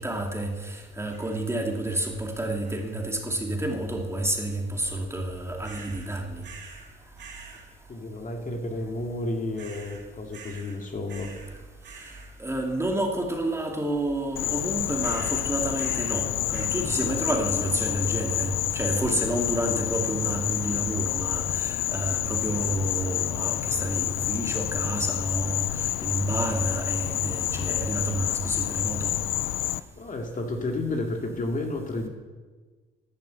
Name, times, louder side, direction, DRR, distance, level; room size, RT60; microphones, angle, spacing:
voice 1, 0.0-6.4 12.4-29.1, right 1 dB, 15° right, 1 dB, 2.5 m, -29 dB
sound 1, 1.1-1.5 1.9-2.3 2.6-3.1 5.6-6.1 6.4-6.9 7.2-7.6 9.6-10.0 10.3-10.8 11.1-11.5 11.8-12.3 15.0-16.2 16.5-16.7, right 5 dB, 70° right, 5.3 m, -45 dB
voice 2, 7.9-11.3 17.2-17.4 30.0-32.1, left 2 dB, 40° left, 2 dB, 2.3 m, -31 dB
Insect, 14.4-29.8, left 14 dB, 80° left, 0.5 m, -29 dB
12.5 x 10.5 x 8.4 m, 1.4 s
cardioid pair, 90°, 20 cm